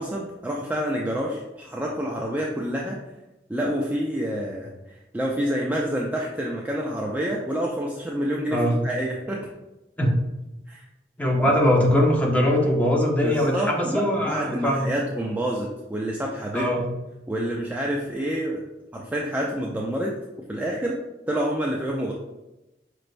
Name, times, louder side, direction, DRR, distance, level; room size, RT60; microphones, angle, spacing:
voice 1, 0.0-3.0 3.5-9.5 10.7-10.9 11.4-11.5 13.2-16.7 17.3-18.6 18.9-20.2 20.5-21.0 21.3-22.1, equal, 10° right, -2 dB, 0.4 m, -28 dB
voice 2, 11.2-14.9 16.5-16.9, equal, 10° left, -2 dB, 0.8 m, -21 dB
5.2 x 3.2 x 2.5 m, 1.0 s
head